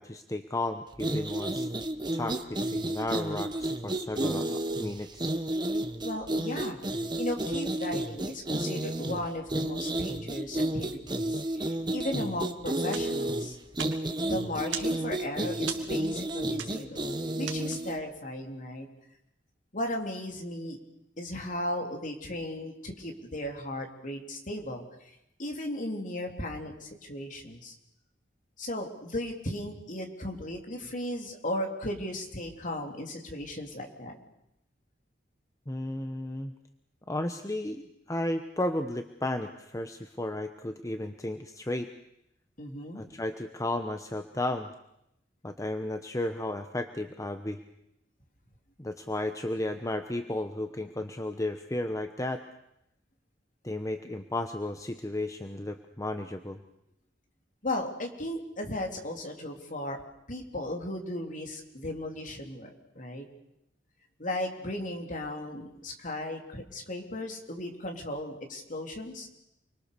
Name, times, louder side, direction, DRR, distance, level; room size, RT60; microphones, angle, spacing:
voice 1, 0.0-1.7 2.1-5.3 35.7-36.5 37.1-41.9 43.0-44.7 45.4-47.6 48.8-52.4 53.6-56.6, left 1 dB, 15° left, 7 dB, 1.0 m, -34 dB
sound 1, 0.9-18.0, right 1 dB, 25° right, 1.4 m, -31 dB
voice 2, 6.0-6.8 7.2-11.6 11.9-13.6 14.2-17.0 17.4-18.9 19.7-20.8 21.2-27.8 28.6-34.2 42.6-43.0 57.6-60.0 60.3-63.3 64.2-69.3, left 1 dB, 45° left, 3 dB, 3.6 m, -36 dB
sound 2, 12.9-18.1, right 8 dB, 90° right, 2.5 m, -41 dB
29.0 x 22.5 x 6.9 m, 0.82 s
head